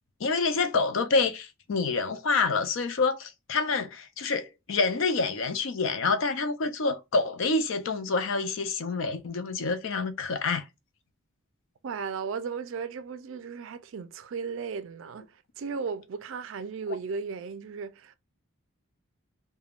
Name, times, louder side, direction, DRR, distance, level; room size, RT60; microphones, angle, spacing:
voice 1, 0.2-10.6, left 4 dB, 70° left, 0.5 m, -27 dB
voice 2, 11.8-18.2, right 5 dB, 65° right, 0.3 m, -36 dB
3.4 x 2.2 x 2.3 m
head